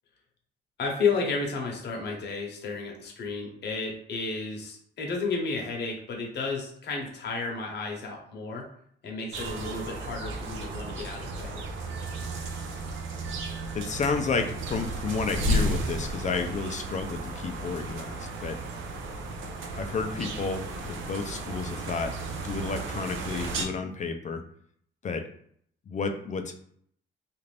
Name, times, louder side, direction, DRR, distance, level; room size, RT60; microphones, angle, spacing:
voice 1, 0.8-8.7 9.0-11.6, left 4 dB, 60° left, 0 dB, 0.9 m, -32 dB
sound 1, 9.3-23.6, right 2 dB, 80° right, 0.5 m, -34 dB
voice 2, 13.7-18.6 19.7-22.1 22.4-24.4 25.0-25.2 25.9-26.5, left 4 dB, 40° left, 6 dB, 0.4 m, -31 dB
2.5 x 2.4 x 3.3 m, 0.64 s
cardioid pair, 90°, 20 cm